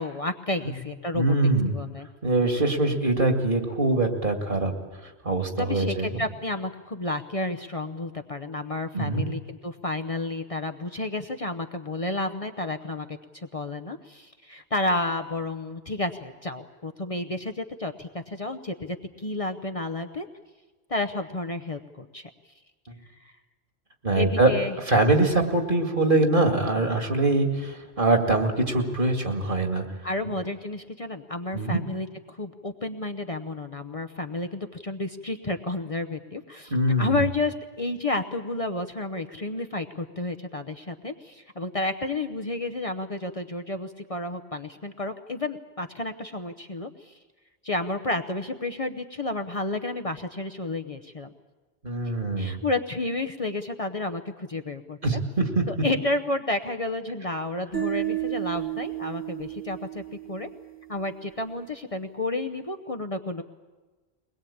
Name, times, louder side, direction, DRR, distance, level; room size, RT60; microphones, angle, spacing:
voice 1, 0.0-2.1 5.6-20.3 20.9-22.3 24.1-24.7 30.0-36.7 37.0-47.2 47.6-51.3 52.4-55.2 55.7-60.0 60.3-60.5 60.9-63.4, left 2 dB, 35° left, 5 dB, 0.8 m, -31 dB
voice 2, 1.1-1.8 2.2-4.7 5.0-6.2 8.9-9.3 24.0-24.5 24.9-29.8 30.2-30.3 31.5-31.8 36.7-37.3 51.8-52.6 55.0-55.6, right 2 dB, 55° right, 5 dB, 2.4 m, -23 dB
sound 1, 57.7-60.9, right 13 dB, 10° right, 1.5 m, -32 dB
22.0 x 20.5 x 8.6 m, 1.3 s
omnidirectional pair, 1.1 m